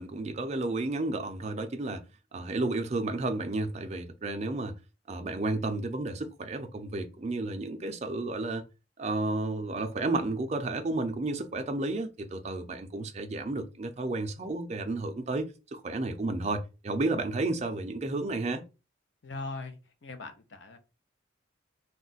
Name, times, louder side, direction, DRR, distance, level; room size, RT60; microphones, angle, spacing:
voice 1, 0.0-2.0 2.3-4.8 5.1-8.6 9.0-18.6, right 2 dB, 35° right, 0.4 m, -32 dB
voice 2, 19.2-20.8, left 3 dB, 65° left, 0.6 m, -40 dB
2.4 x 2.1 x 3.8 m
head